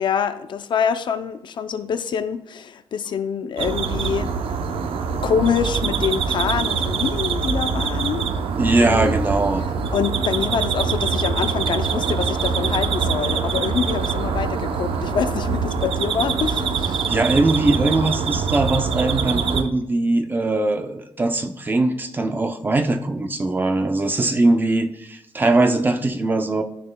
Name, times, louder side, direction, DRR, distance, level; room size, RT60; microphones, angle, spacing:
voice 1, 0.0-4.6 5.2-8.3 8.8-9.2 9.9-17.1, left 7 dB, 55° left, 11 dB, 0.4 m, -25 dB
sound 1, 3.6-19.6, right 5 dB, 80° right, 0.7 m, -24 dB
voice 2, 8.6-9.6 17.1-26.6, right 2 dB, 20° right, 6 dB, 0.6 m, -21 dB
13.0 x 6.5 x 2.2 m, 0.78 s
wide cardioid pair, 150°, 9 cm